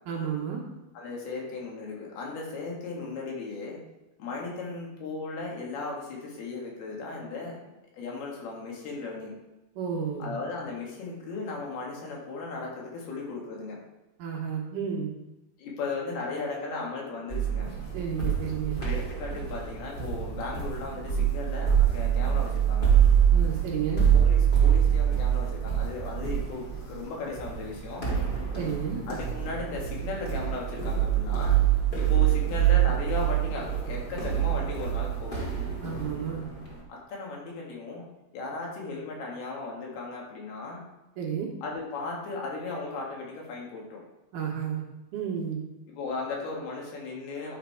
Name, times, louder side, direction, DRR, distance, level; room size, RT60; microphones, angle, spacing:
voice 1, 0.1-0.6 9.8-10.3 14.2-15.1 17.9-18.8 23.3-24.1 28.5-29.0 35.8-36.5 41.2-41.5 44.3-44.8 45.1-45.6, right 7 dB, 70° right, -1 dB, 2.3 m, -31 dB
voice 2, 0.9-3.8 4.2-7.6 7.9-9.3 10.2-13.8 15.6-17.7 18.8-22.9 24.1-28.1 29.1-31.6 32.0-35.4 36.9-38.1 38.3-40.9 41.6-44.0 45.9-47.6, left 3 dB, 85° left, -2 dB, 3.8 m, -36 dB
sound 1, 17.3-36.8, right 9 dB, 35° left, 0.8 m, -25 dB
10.5 x 4.6 x 4.6 m, 1.0 s
omnidirectional pair, 4.4 m